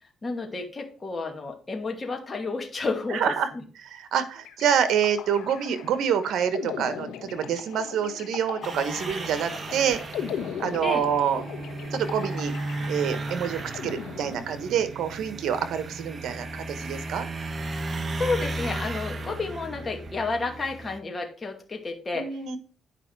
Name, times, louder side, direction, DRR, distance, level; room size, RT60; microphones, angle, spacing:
voice 1, 0.2-3.6 10.8-11.1 18.2-22.4, left 3 dB, 30° left, 3 dB, 2.3 m, -31 dB
voice 2, 3.1-3.5 3.9-10.0 10.6-11.4 11.9-12.5 12.9-17.2 22.1-22.6, right 8 dB, 75° right, 11 dB, 1.3 m, -27 dB
sound 1, 4.4-14.9, left 8 dB, 85° left, 1.2 m, -38 dB
sound 2, 8.6-21.0, right 2 dB, 35° right, 1.1 m, -35 dB
10.0 x 5.5 x 4.7 m, 0.38 s
cardioid pair, 90°, 0 cm